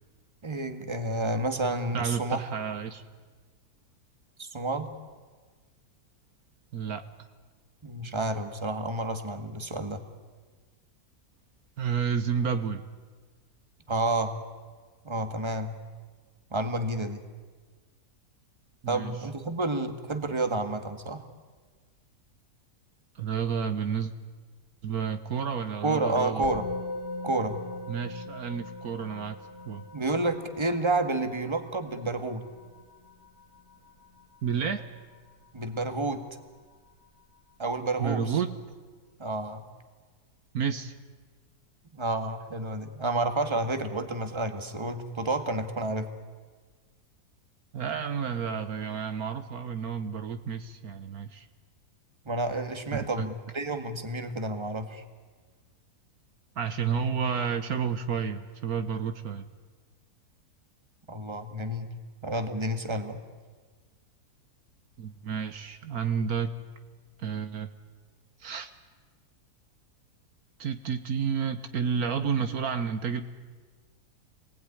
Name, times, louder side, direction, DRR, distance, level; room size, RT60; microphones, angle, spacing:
voice 1, 0.4-2.4 4.4-4.9 7.8-10.0 13.9-14.3 15.1-15.7 16.5-17.2 18.9-21.2 25.8-26.6 27.2-27.6 29.9-32.5 35.5-36.3 37.6-38.4 39.2-39.6 41.9-46.1 52.3-55.0 61.1-61.9 62.2-63.2, right 2 dB, 15° right, 7 dB, 1.8 m, -30 dB
voice 2, 1.9-3.0 6.7-7.3 11.8-12.9 18.8-19.1 23.1-24.1 24.8-26.5 27.9-29.4 29.7-29.8 34.4-34.9 38.0-38.6 40.5-40.9 47.7-51.5 52.9-53.3 56.6-59.5 65.0-66.6 67.2-67.7 68.4-68.7 70.6-73.2, right 7 dB, 70° right, 9 dB, 1.5 m, -31 dB
Musical instrument, 26.4-36.0, left 2 dB, 40° left, 2.0 m, -41 dB
27.0 x 20.0 x 9.9 m, 1.4 s
omnidirectional pair, 1.7 m